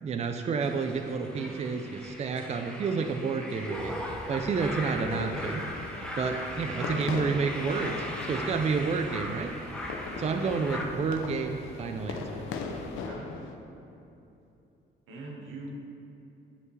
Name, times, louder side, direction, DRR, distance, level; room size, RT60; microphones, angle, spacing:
voice 1, 0.0-3.9 4.3-5.7 6.2-9.5 10.2-12.4, right 5 dB, 35° right, 5 dB, 0.4 m, -30 dB
sound 1, 0.6-10.8, equal, 5° left, 0.9 m, -38 dB
voice 2, 1.4-1.7 12.6-13.4 15.1-15.7, right 2 dB, 90° right, -1 dB, 1.2 m, -44 dB
sound 2, 3.7-13.1, left 1 dB, 30° left, 1.2 m, -48 dB
sound 3, 4.7-13.5, left 4 dB, 90° left, 0.6 m, -40 dB
9.7 x 5.2 x 3.2 m, 2.8 s
cardioid pair, 90°, 20 cm